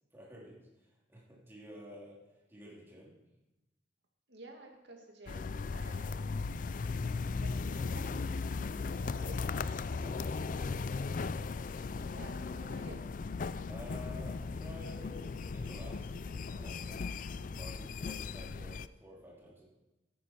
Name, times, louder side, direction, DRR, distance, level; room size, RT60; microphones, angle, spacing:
voice 1, 0.1-2.2 2.5-3.1 10.0-11.4 13.7-16.1 16.4-19.7, equal, 15° right, -5 dB, 3.3 m, -52 dB
voice 2, 4.3-6.2 7.4-8.1 9.0-9.4 9.9-10.1 12.1-13.0, right 2 dB, 70° right, 2 dB, 2.2 m, -52 dB
sound 1, 5.3-18.9, left 4 dB, 45° left, 0.4 m, -37 dB
13.0 x 10.0 x 4.6 m, 1.0 s
head